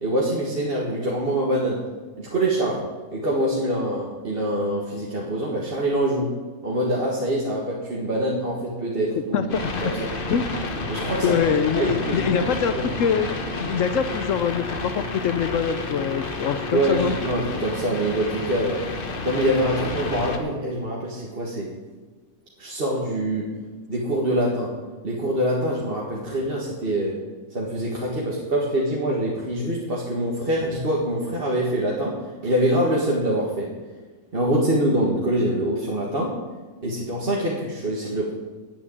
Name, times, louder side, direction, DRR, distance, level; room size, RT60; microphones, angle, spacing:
voice 1, 0.0-1.8 2.2-2.8 3.1-6.3 6.6-9.5 9.8-10.0 10.9-11.4 11.7-12.8 16.7-18.8 19.2-21.7 22.6-23.5 23.9-24.7 25.0-27.1 27.5-32.1 32.4-33.7 34.3-36.3 36.8-38.3, right 1 dB, 40° right, -3 dB, 1.8 m, -24 dB
voice 2, 9.3-9.9 10.3-10.5 11.2-17.1, left 7 dB, 70° left, 10 dB, 1.0 m, -24 dB
sound 1, 9.5-20.4, left 2 dB, 40° left, 1.3 m, -30 dB
9.3 x 8.6 x 8.5 m, 1.3 s
omnidirectional pair, 1.5 m